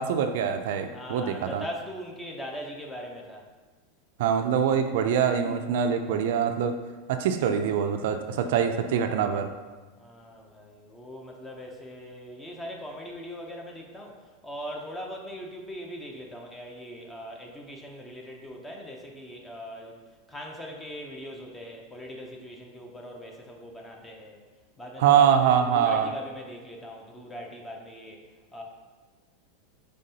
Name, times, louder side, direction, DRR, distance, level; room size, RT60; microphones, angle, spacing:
voice 1, 0.0-1.6 4.2-6.8 7.1-9.5 25.0-26.1, right 8 dB, 70° right, 7 dB, 0.3 m, -24 dB
voice 2, 0.9-3.5 8.3-8.6 10.0-14.2 14.4-20.0 20.3-24.4 24.8-28.2 28.5-28.6, equal, 10° left, 1 dB, 0.6 m, -40 dB
5.2 x 3.3 x 2.8 m, 1.3 s
supercardioid pair, 145°, 0 cm